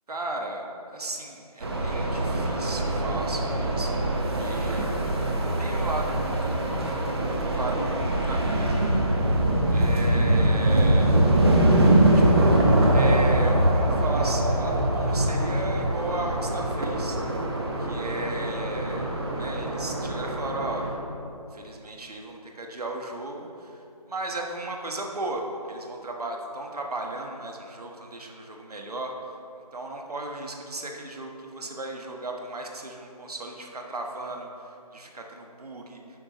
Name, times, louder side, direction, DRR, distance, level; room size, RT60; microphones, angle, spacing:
voice 1, 0.1-4.8 5.1-5.3 5.6-6.6 7.4-8.8 9.7-11.2 12.1-12.6 12.9-17.2 17.8-19.1 19.4-20.9 21.5-23.8 24.1-29.4 29.7-36.0, right 2 dB, 70° right, 1 dB, 1.5 m, -35 dB
sound 1, 1.6-20.9, right 1 dB, 40° right, 1.2 m, -23 dB
11.0 x 8.6 x 3.1 m, 2.7 s
figure-of-eight pair, 165°, 20 cm